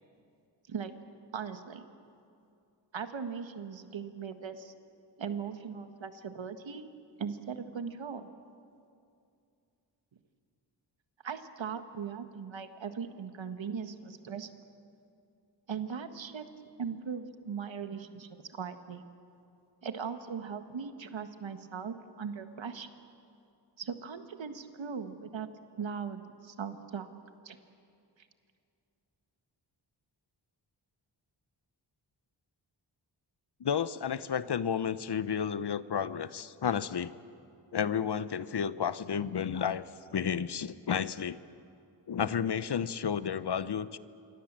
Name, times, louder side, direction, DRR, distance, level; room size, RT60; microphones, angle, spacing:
voice 1, 1.3-1.8 2.9-4.7 5.2-6.9 7.2-8.3 11.2-14.5 15.7-16.4 16.8-19.0 19.8-22.9 23.8-25.5 25.8-27.1 27.4-27.6, right 6 dB, 75° right, 8 dB, 1.6 m, -39 dB
voice 2, 33.6-37.1 37.7-39.8 40.1-41.4 42.1-44.0, left 7 dB, 60° left, 15 dB, 0.9 m, -31 dB
27.0 x 24.0 x 7.5 m, 2.5 s
cardioid pair, 65°, 45 cm